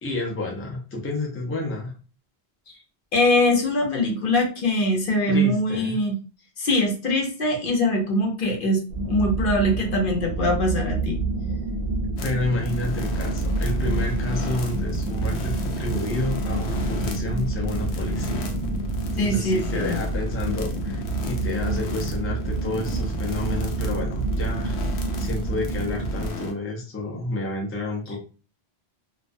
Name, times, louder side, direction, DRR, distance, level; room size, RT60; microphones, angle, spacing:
voice 1, 0.0-1.9 5.3-6.0 12.2-18.4 19.1-24.8 25.2-28.2, left 2 dB, 20° left, -1 dB, 0.4 m, -30 dB
voice 2, 3.1-6.1 6.6-11.2 19.2-20.0, left 1 dB, 55° left, 1 dB, 0.8 m, -22 dB
sound 1, 8.9-26.3, right 2 dB, 55° right, 0.4 m, -28 dB
sound 2, 12.2-26.5, left 2 dB, 85° left, 0.9 m, -35 dB
2.3 x 2.1 x 2.5 m, 0.35 s
omnidirectional pair, 1.1 m